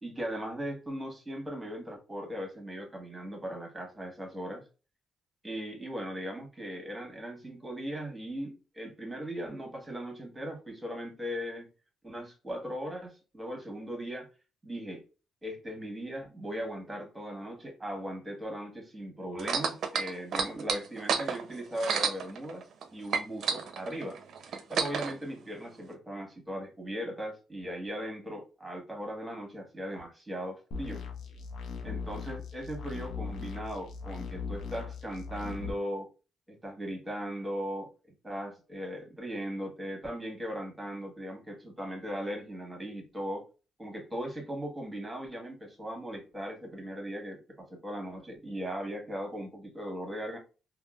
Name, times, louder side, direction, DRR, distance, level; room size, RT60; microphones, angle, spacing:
voice 1, 0.0-4.6 5.4-11.7 12.0-14.3 14.6-15.0 15.4-22.7 22.9-24.2 24.5-31.0 31.8-36.1 36.5-37.9 38.2-43.5 43.8-50.4, equal, 15° right, 1.2 m, -38 dB
sound 1, 19.4-22.8 23.1-25.1 25.9-26.0, right 6 dB, 65° right, 0.5 m, -30 dB
sound 2, 30.7-35.7, left 5 dB, 75° left, 0.6 m, -39 dB
3.6 x 2.2 x 2.3 m
cardioid pair, 90°, 0 cm